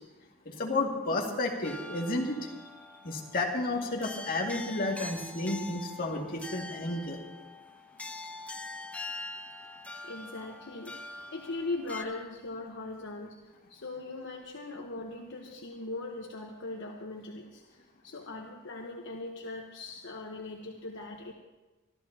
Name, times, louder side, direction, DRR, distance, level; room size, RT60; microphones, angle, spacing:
voice 1, 0.5-2.7 3.0-7.2, left 2 dB, 45° left, -2 dB, 2.3 m, -32 dB
sound 1, 1.6-12.0, left 2 dB, 5° left, 0.6 m, -44 dB
voice 2, 10.0-21.3, left 2 dB, 60° left, 0 dB, 1.2 m, -40 dB
24.0 x 13.5 x 2.9 m, 1.1 s
head